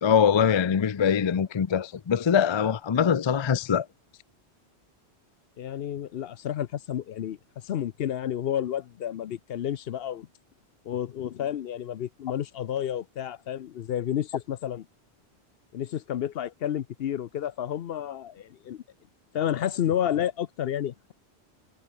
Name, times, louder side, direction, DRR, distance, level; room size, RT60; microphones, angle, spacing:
voice 1, 0.0-3.9, left 7 dB, 40° left, 0.4 m, -23 dB
voice 2, 5.6-7.4 7.6-10.3 10.9-14.8 15.7-18.8 19.3-21.1, left 10 dB, 65° left, 0.8 m, -30 dB
omnidirectional pair, 1.1 m